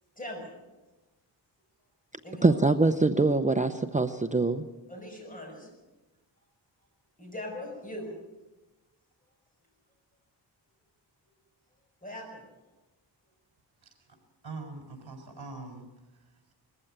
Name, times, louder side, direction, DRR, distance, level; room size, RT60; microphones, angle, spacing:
voice 1, 0.2-0.5 2.2-2.6 4.9-5.7 7.2-8.1 12.0-12.4, left 1 dB, 20° left, 1 dB, 5.7 m, -40 dB
voice 2, 2.4-4.7, right 3 dB, 15° right, 9 dB, 0.7 m, -24 dB
voice 3, 13.8-14.2 14.4-16.5, right 3 dB, 55° right, 5 dB, 4.6 m, -44 dB
21.0 x 15.0 x 8.8 m, 1.1 s
wide cardioid pair, 140°, 43 cm